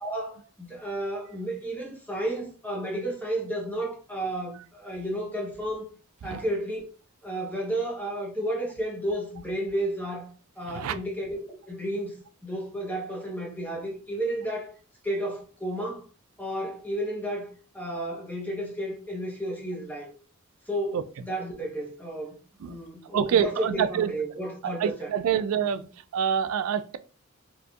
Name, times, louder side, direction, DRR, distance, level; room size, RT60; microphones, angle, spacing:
voice 1, 0.0-5.9 6.2-6.8 7.2-12.1 12.4-14.7 15.0-16.0 16.4-20.1 20.7-25.4, right 1 dB, 10° left, 0.9 m, -32 dB
voice 2, 23.1-24.1 24.6-25.8 26.1-27.0, right 8 dB, 90° right, 0.3 m, -26 dB
4.0 x 2.5 x 2.3 m
head